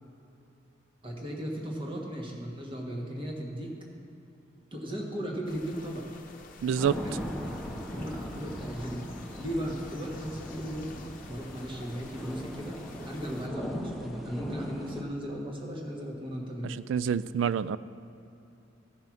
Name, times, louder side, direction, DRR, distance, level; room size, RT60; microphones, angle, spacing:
voice 1, 1.0-3.7 4.7-6.1 7.0-7.2 7.9-9.0 9.4-12.8 13.0-16.8, equal, 25° right, 1.5 m, -36 dB
sound 1, 5.5-13.5, left 3 dB, 45° left, 0.8 m, -51 dB
voice 2, 6.6-7.0 16.6-17.8, right 7 dB, 85° right, 0.3 m, -27 dB
sound 2, 6.8-15.0, equal, ahead, 0.9 m, -39 dB
15.0 x 5.5 x 6.0 m
head